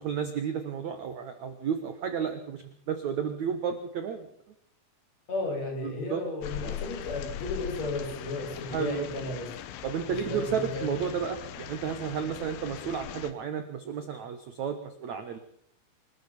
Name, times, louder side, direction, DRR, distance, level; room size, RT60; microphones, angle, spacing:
voice 1, 0.0-4.3 5.8-6.2 8.7-9.2 9.8-15.4, right 7 dB, 70° right, 9 dB, 1.7 m, -32 dB
voice 2, 5.3-9.5 10.1-10.9, left 2 dB, 35° left, 1 dB, 6.6 m, -34 dB
sound 1, 6.4-13.3, left 11 dB, 85° left, 3.8 m, -40 dB
26.0 x 14.0 x 7.2 m, 0.64 s
omnidirectional pair, 5.4 m